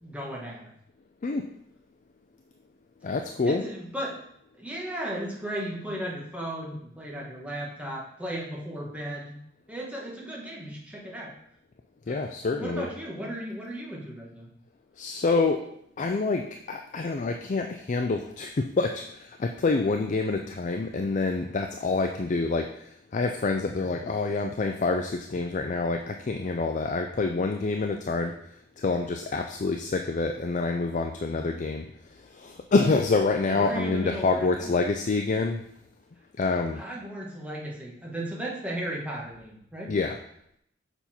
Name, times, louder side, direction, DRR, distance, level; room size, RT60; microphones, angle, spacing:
voice 1, 0.0-0.7 3.4-4.2 4.5-9.4 9.7-11.3 12.1-12.3 12.6-14.5 23.9-24.0 31.3-31.5 33.5-34.7 36.8-39.9, right 1 dB, 5° right, -4 dB, 1.6 m, -35 dB
voice 2, 3.0-3.6 12.1-12.9 15.0-15.6 16.0-28.3 28.8-35.6 36.4-36.8 39.9-40.2, left 3 dB, 40° left, 5 dB, 0.4 m, -27 dB
7.0 x 5.5 x 4.4 m, 0.73 s
head